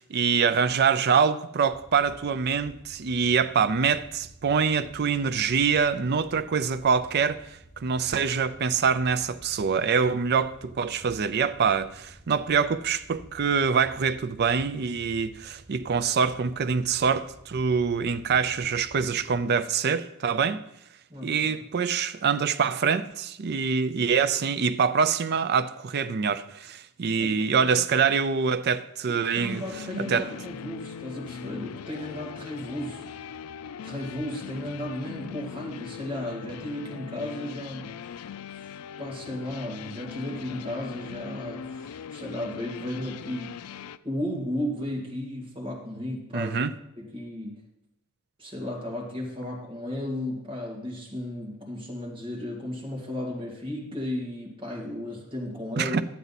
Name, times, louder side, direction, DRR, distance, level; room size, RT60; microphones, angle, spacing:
voice 1, 0.0-20.6 21.2-29.6 30.1-30.3 46.3-46.7 55.8-56.0, right 6 dB, 45° right, 0.5 m, -25 dB
sound 1, 1.7-19.4, right 1 dB, 5° right, 1.8 m, -51 dB
voice 2, 21.1-21.6 27.2-27.8 29.1-33.1 33.8-37.9 38.5-46.6 47.0-47.6 48.4-56.0, left 1 dB, 25° right, 2.1 m, -34 dB
sound 2, 29.4-44.0, left 7 dB, 75° left, 0.4 m, -40 dB
12.0 x 9.3 x 4.1 m
head